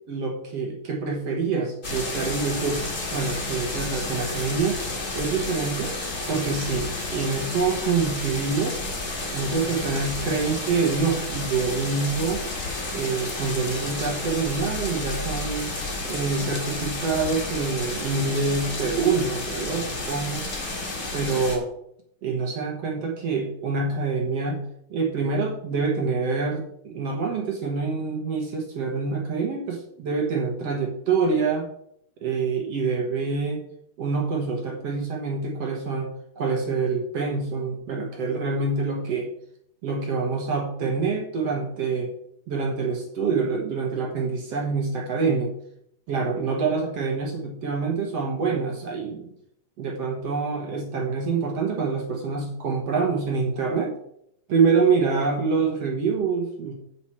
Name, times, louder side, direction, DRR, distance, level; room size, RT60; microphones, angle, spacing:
voice 1, 0.1-2.8 3.1-4.8 5.1-5.9 6.3-8.8 9.3-12.4 12.9-15.7 16.0-20.4 21.1-21.7 22.2-24.6 24.9-31.7 32.2-33.6 34.0-39.3 39.8-42.1 42.5-45.5 46.1-49.3 49.8-53.9 54.5-56.7, right 4 dB, 60° right, 0 dB, 1.7 m, -26 dB
sound 1, 1.8-21.6, left 2 dB, 30° left, 1.5 m, -31 dB
7.9 x 7.8 x 4.4 m, 0.72 s
omnidirectional pair, 4.3 m